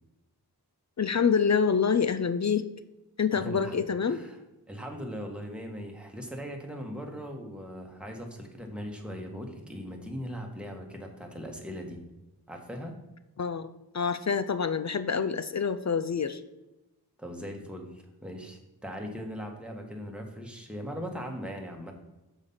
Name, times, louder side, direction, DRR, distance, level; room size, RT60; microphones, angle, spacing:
voice 1, 1.0-2.7 3.2-4.2 13.4-16.4, left 6 dB, 45° left, 11 dB, 0.4 m, -27 dB
voice 2, 3.3-3.8 4.1-4.4 4.7-12.0 12.5-12.9 17.2-21.9, equal, 5° right, 2 dB, 1.5 m, -39 dB
6.4 x 5.0 x 5.5 m, 1.0 s
wide cardioid pair, 45°, 40 cm